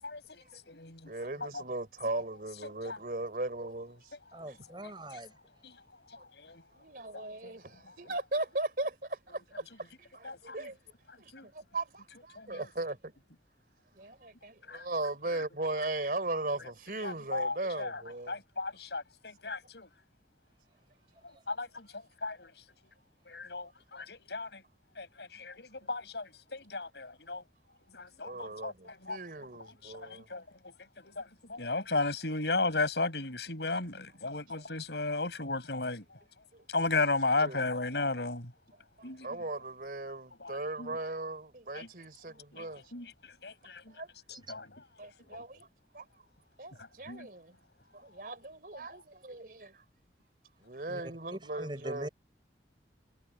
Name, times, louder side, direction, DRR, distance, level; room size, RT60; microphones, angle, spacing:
voice 1, 0.0-1.1 2.8-3.0 4.8-4.9 5.6-5.7 6.4-6.6 7.1-7.5 10.2-10.7 11.3-11.5 12.4-12.6 14.7-14.8 17.0-18.0 18.3-19.9 21.5-21.9 22.2-22.5 23.3-24.6 25.0-27.4 27.9-29.2 29.8-30.4 31.0-36.0 36.7-38.5 39.0-39.3 40.4-40.5 40.8-41.0 41.8-41.9 42.5-43.9 44.5-44.8 45.3-45.4 47.1-47.3, left 3 dB, 75° left, 5.5 m, -35 dB
voice 2, 1.1-4.1 4.4-4.6 6.8-10.8 11.2-13.1 13.9-18.4 28.2-30.3 34.6-34.7 36.5-36.6 37.4-37.7 39.0-42.9 43.9-44.4 45.0-45.7 45.9-46.1 46.6-47.6 47.9-49.8 50.6-52.1, right 2 dB, 50° right, 3.7 m, -38 dB
voice 3, 4.3-5.3 50.9-51.0 51.3-52.1, right 1 dB, 25° right, 6.2 m, -42 dB
head